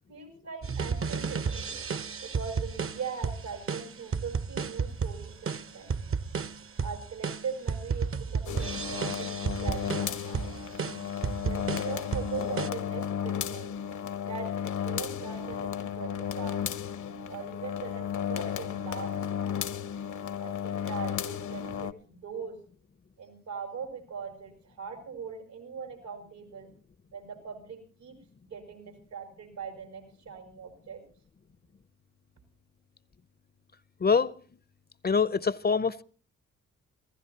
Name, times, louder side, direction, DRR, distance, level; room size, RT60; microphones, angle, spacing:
voice 1, 0.1-1.8 2.2-6.0 6.8-10.5 11.3-13.8 14.2-16.6 17.3-19.6 20.4-22.6 23.2-26.7 27.1-28.2 28.4-31.0, right 6 dB, 85° right, 4.9 m, -41 dB
sound 1, 0.6-12.7, right 5 dB, 40° right, 0.8 m, -33 dB
sound 2, 8.5-21.9, left 9 dB, 60° left, 0.8 m, -34 dB
voice 2, 34.0-34.3 35.0-36.0, left 5 dB, 30° left, 0.6 m, -24 dB
26.5 x 16.0 x 2.8 m
supercardioid pair, 40°, 35 cm